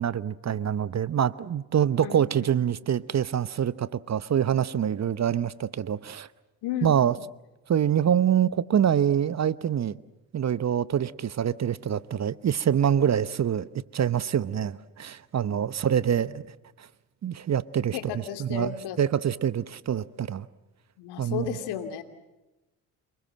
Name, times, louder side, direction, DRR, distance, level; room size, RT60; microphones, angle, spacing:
voice 1, 0.0-6.3 6.8-7.1 7.7-10.0 10.3-16.9 17.2-18.0 18.4-20.5 21.2-21.5, right 9 dB, 40° right, 1.0 m, -25 dB
voice 2, 2.0-2.5 6.6-7.1 17.9-19.0 21.0-22.0, left 10 dB, 75° left, 2.7 m, -33 dB
28.5 x 21.0 x 7.6 m
hypercardioid pair, 55°, 40 cm